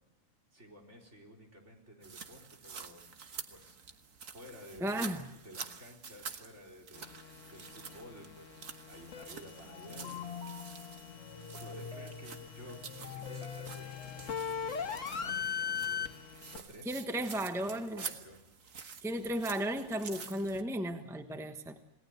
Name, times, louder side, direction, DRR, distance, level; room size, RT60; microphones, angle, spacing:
voice 1, 0.5-3.0 3.5-4.0 4.3-10.3 11.6-16.2 16.5-18.4, equal, 55° right, 0 dB, 4.8 m, -53 dB
sound 1, 2.0-20.6, right 6 dB, 75° right, 1.7 m, -48 dB
voice 2, 4.8-5.2 16.8-18.0 19.0-21.8, right 1 dB, ahead, 7 dB, 1.1 m, -35 dB
sound 2, 6.9-16.6, left 7 dB, 65° left, 1.7 m, -41 dB
sound 3, 9.6-15.1, left 7 dB, 50° left, 1.9 m, -46 dB
27.5 x 18.5 x 8.1 m, 0.90 s
omnidirectional pair, 1.4 m